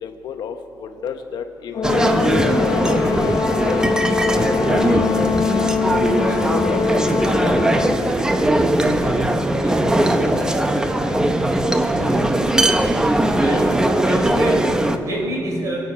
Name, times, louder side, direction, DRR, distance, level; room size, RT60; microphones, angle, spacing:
voice 1, 0.0-3.8 4.3-5.0 6.1-10.5 10.8-11.2 11.6-12.2, left 7 dB, 70° left, 6 dB, 1.0 m, -33 dB
Brass instrument, 1.7-8.1, left 7 dB, 45° left, 0.5 m, -23 dB
sound 1, 1.8-15.0, right 1 dB, 10° right, 0.7 m, -19 dB
Bass guitar, 4.7-9.0 9.3-10.9, left 10 dB, 70° right, 3.5 m, -33 dB
voice 2, 13.3-15.8, right 1 dB, 45° right, -1 dB, 3.8 m, -27 dB
24.5 x 9.0 x 5.5 m, 2.9 s
wide cardioid pair, 160°, 8 cm